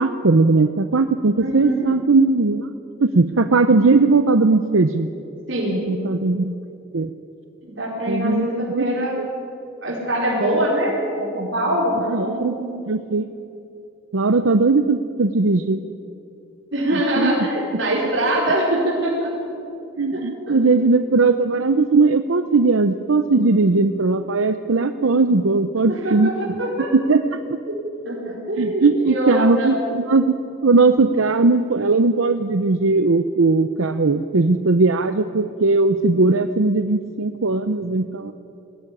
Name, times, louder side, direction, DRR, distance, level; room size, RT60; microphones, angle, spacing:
voice 1, 0.0-2.7 3.0-5.1 5.9-6.5 6.9-7.1 8.1-8.9 9.2-9.3 12.1-12.5 12.8-13.3 14.1-15.8 16.9-17.3 20.0-26.3 26.9-27.4 28.6-30.3 30.6-38.3, right 3 dB, 90° right, 9 dB, 0.8 m, -18 dB
voice 2, 1.4-1.9 5.5-5.8 7.6-9.1 9.8-12.7 16.7-19.3 20.1-20.6 25.9-26.9 27.7-27.8 28.0-29.7, right 1 dB, 70° right, -5 dB, 4.8 m, -23 dB
21.0 x 16.5 x 10.0 m, 2.7 s
head